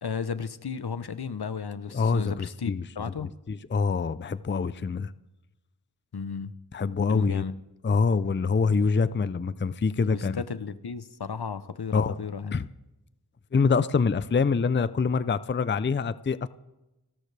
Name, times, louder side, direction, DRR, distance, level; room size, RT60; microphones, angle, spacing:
voice 1, 0.0-3.3 6.1-6.5 7.1-7.6 10.1-12.6, left 6 dB, 70° left, 13 dB, 0.8 m, -34 dB
voice 2, 1.9-2.8 3.5-5.1 6.7-7.4 7.8-10.4 11.9-12.2 12.5-12.7 13.5-16.5, left 5 dB, 30° left, 16 dB, 0.5 m, -25 dB
30.0 x 13.5 x 3.3 m, 0.99 s
wide cardioid pair, 55°, 40 cm